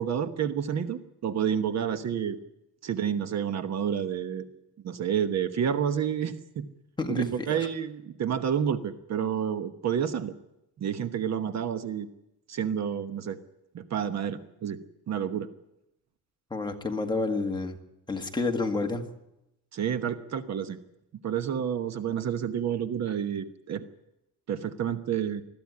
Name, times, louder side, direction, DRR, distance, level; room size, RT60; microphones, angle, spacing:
voice 1, 0.0-2.4 2.8-4.5 4.8-6.6 7.1-10.3 10.8-12.1 12.5-13.4 13.7-14.8 15.1-15.5 19.7-20.8 21.2-23.8 24.5-25.4, right 8 dB, 50° right, 10 dB, 1.2 m, -29 dB
voice 2, 7.0-7.7 16.5-17.8 18.1-19.0, left 3 dB, 10° left, 3 dB, 1.8 m, -29 dB
20.5 x 14.0 x 9.6 m, 0.88 s
cardioid pair, 145°, 35 cm